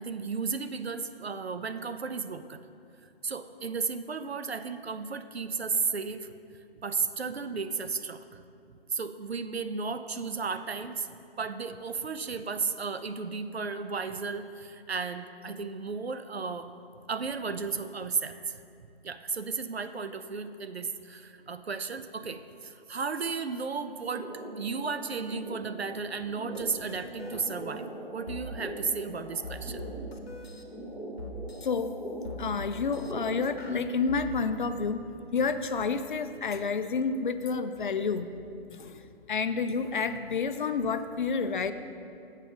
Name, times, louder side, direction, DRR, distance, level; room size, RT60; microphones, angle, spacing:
voice 1, 0.0-2.6 3.2-8.4 8.9-16.7 17.1-27.9 28.1-29.8, right 5 dB, 85° right, 10 dB, 0.5 m, -34 dB
sound 1, 24.2-33.6, right 1 dB, 10° right, 0.9 m, -42 dB
sound 2, 26.5-26.6 26.9-27.4 28.3-28.4 29.4-30.6 31.2-31.7 32.2-33.1 33.6-34.2, left 3 dB, 75° left, 0.9 m, -42 dB
voice 2, 31.6-31.9 32.4-38.3 38.7-41.7, left 5 dB, 55° left, 10 dB, 0.5 m, -30 dB
7.4 x 5.4 x 6.0 m, 2.5 s
figure-of-eight pair, 140°, 31 cm